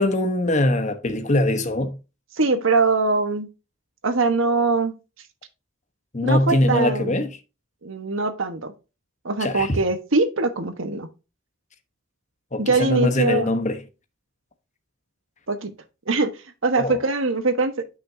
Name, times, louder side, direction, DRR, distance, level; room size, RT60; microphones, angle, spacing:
voice 1, 0.0-2.0 6.1-7.3 9.4-9.8 12.5-13.8 16.8-17.0, left 1 dB, 35° left, 1.0 m, -22 dB
voice 2, 2.3-3.5 4.0-4.9 6.2-7.2 7.8-8.7 9.2-11.1 12.6-13.5 15.5-15.7 16.1-17.8, right 3 dB, 65° right, 1.2 m, -22 dB
8.9 x 6.0 x 2.7 m
head